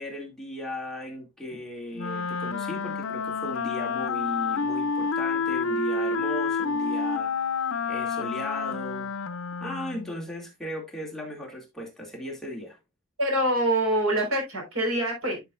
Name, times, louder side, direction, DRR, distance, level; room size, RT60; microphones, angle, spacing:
voice 1, 0.0-7.5 7.9-9.1 9.6-12.8, equal, ahead, 2.3 m, -37 dB
Wind instrument woodwind instrument, 2.0-10.2, left 4 dB, 75° left, 0.6 m, -29 dB
voice 2, 13.2-15.4, right 1 dB, 75° right, 4.4 m, -25 dB
11.5 x 6.4 x 2.4 m
head